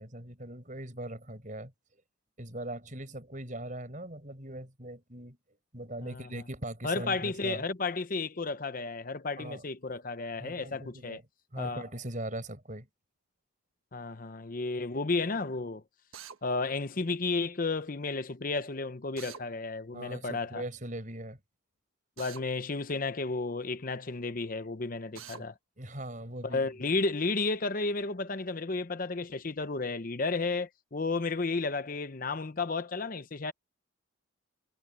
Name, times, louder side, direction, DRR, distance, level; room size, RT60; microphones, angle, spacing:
voice 1, 0.0-1.7 2.4-5.4 5.7-7.6 9.4-9.6 10.4-11.2 11.5-12.9 19.9-21.4 25.1-25.5 25.8-26.7, right 1 dB, 40° right, 6.6 m, -40 dB
voice 2, 6.8-11.2 11.6-11.8 13.9-15.8 16.4-20.6 22.2-25.5 26.4-33.5, left 3 dB, 45° left, 0.8 m, -32 dB
Drill, 16.1-16.4 19.2-19.4 22.2-22.5 25.1-25.4, right 8 dB, 85° right, 1.4 m, -45 dB
head